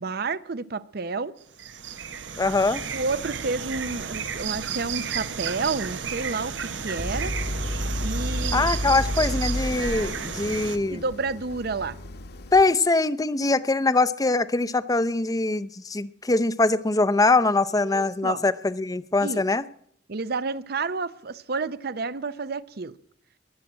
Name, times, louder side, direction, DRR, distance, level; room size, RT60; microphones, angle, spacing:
voice 1, 0.0-1.3 2.9-7.4 8.0-8.7 10.9-12.0 17.8-18.4 19.2-19.4 20.1-22.9, right 4 dB, 55° right, 0.7 m, -30 dB
sound 1, 1.4-10.8, right 6 dB, 80° right, 1.1 m, -33 dB
voice 2, 2.4-2.8 8.5-11.0 12.5-19.6, left 3 dB, 20° left, 0.6 m, -23 dB
sound 2, 7.0-12.6, left 1 dB, 60° left, 1.3 m, -31 dB
22.0 x 7.4 x 8.8 m
head